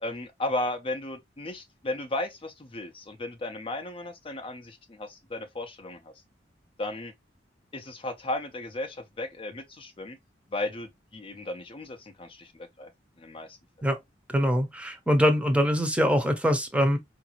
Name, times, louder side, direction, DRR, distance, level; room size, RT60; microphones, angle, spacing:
voice 1, 0.0-6.1 6.8-7.1 7.7-10.2 10.5-12.9 13.2-13.6, left 2 dB, 30° left, 0.5 m, -35 dB
voice 2, 14.3-17.0, equal, 5° right, 0.7 m, -23 dB
4.7 x 2.6 x 2.9 m
head